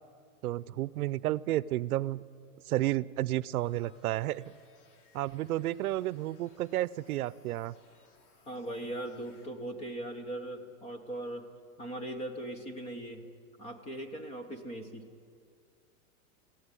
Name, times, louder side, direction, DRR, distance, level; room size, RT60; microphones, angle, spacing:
voice 1, 0.4-2.2 2.7-4.4 5.1-7.7, right 15 dB, 80° right, 19 dB, 0.6 m, -31 dB
sound 1, 3.5-9.5, left 4 dB, 80° left, 4.1 m, -65 dB
voice 2, 8.5-11.5 11.8-13.2 13.6-15.1, right 1 dB, 15° left, 7 dB, 1.0 m, -39 dB
22.0 x 15.0 x 9.7 m, 2.2 s
supercardioid pair, 170°, 44 cm